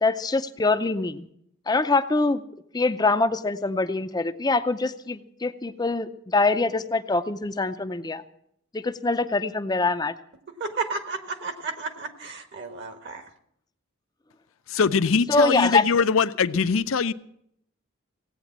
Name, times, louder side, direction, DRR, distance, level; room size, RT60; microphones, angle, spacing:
voice 1, 0.0-1.3 1.7-2.4 2.7-8.2 8.7-10.1 15.3-15.9, left 3 dB, 20° left, 0.5 m, -24 dB
voice 2, 10.6-13.2, right 4 dB, 55° right, 1.5 m, -32 dB
voice 3, 14.7-17.1, left 5 dB, 80° left, 0.6 m, -22 dB
17.0 x 8.9 x 7.2 m
head